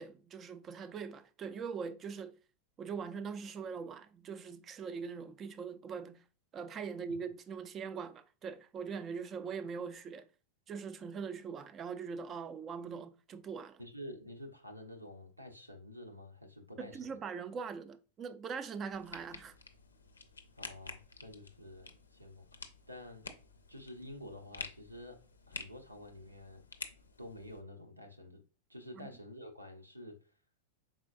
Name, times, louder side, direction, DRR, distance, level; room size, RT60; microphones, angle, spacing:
voice 1, 0.0-2.4 2.8-6.2 6.5-10.3 10.7-13.8 16.8-19.6 29.0-29.1, right 6 dB, 25° right, 0.4 m, -42 dB
voice 2, 13.8-17.2 20.6-23.3 23.7-25.2 25.5-26.6 27.2-28.4 28.7-30.2, left 1 dB, 85° right, 0.8 m, -49 dB
sound 1, 18.9-27.6, left 4 dB, 75° left, 0.5 m, -50 dB
5.0 x 3.8 x 2.5 m
figure-of-eight pair, 90°, 0 cm